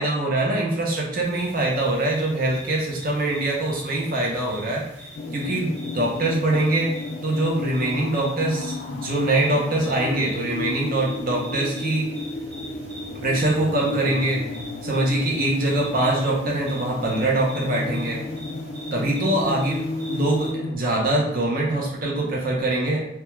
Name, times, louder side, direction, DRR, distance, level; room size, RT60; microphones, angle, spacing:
voice 1, 0.0-4.8 5.3-6.9 7.2-12.1 13.2-14.5 14.8-18.2 18.9-19.8 20.1-23.1, right 2 dB, 50° right, -2 dB, 0.7 m, -23 dB
sound 1, 1.2-20.5, equal, 80° right, 1.0 m, -43 dB
sound 2, 5.2-20.8, left 2 dB, 55° left, 0.3 m, -32 dB
2.3 x 2.2 x 3.0 m, 0.81 s
head